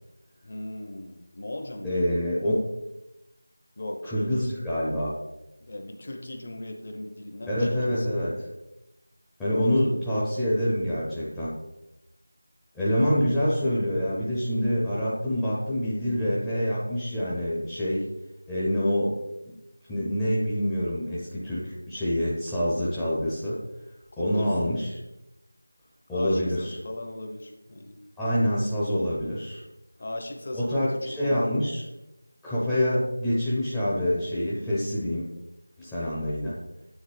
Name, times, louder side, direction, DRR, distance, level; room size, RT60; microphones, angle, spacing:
voice 1, 0.4-2.0 3.8-4.5 5.6-8.1 9.6-10.0 24.2-24.6 26.1-28.0 30.0-31.5, left 1 dB, 35° left, 4 dB, 0.8 m, -38 dB
voice 2, 1.8-2.7 4.0-5.2 7.5-8.5 9.4-11.5 12.7-18.1 18.5-19.1 19.5-19.6 19.9-23.6 24.2-24.9 26.1-26.8 28.2-29.6 30.5-31.8 32.4-35.3 35.8-36.6, equal, 5° left, -11 dB, 0.6 m, -26 dB
9.3 x 3.7 x 3.3 m, 0.95 s
figure-of-eight pair, 170°, 0 cm